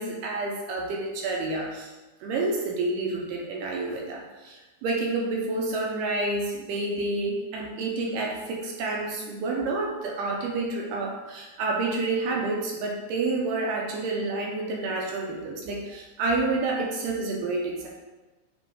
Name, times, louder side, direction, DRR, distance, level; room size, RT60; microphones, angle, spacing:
voice 1, 0.0-1.9 2.2-17.9, right 3 dB, 80° right, -1 dB, 2.1 m, -29 dB
8.4 x 2.9 x 3.7 m, 1.2 s
omnidirectional pair, 4.3 m